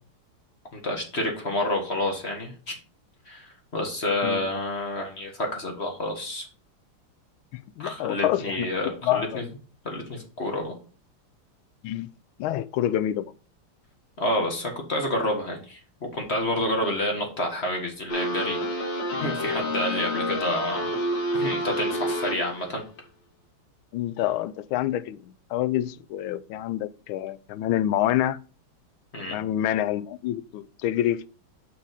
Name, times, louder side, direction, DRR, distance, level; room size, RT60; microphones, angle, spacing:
voice 1, 0.7-2.8 3.3-6.5 7.8-9.4 9.9-10.7 14.2-15.8 16.1-18.6 19.2-20.9 21.3-22.8 29.1-29.4, left 1 dB, 35° left, 1.8 m, -29 dB
voice 2, 7.8-8.7 9.0-9.4 11.8-12.1 12.4-13.2 23.9-28.4 29.3-31.3, left 12 dB, 80° left, 1.4 m, -27 dB
sound 1, 18.1-22.7, equal, 60° left, 2.2 m, -28 dB
6.8 x 5.5 x 3.9 m
omnidirectional pair, 2.3 m